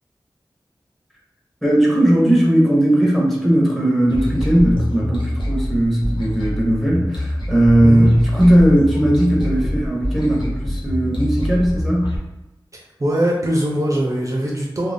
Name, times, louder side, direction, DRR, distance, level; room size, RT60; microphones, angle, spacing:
voice 1, 1.6-12.1, right 1 dB, ahead, -3 dB, 0.8 m, -17 dB
sound 1, 4.1-12.2, equal, 70° left, 0.6 m, -25 dB
voice 2, 12.7-14.9, right 1 dB, 40° right, -1 dB, 0.5 m, -21 dB
2.5 x 2.1 x 3.3 m, 0.98 s
wide cardioid pair, 80°, 8 cm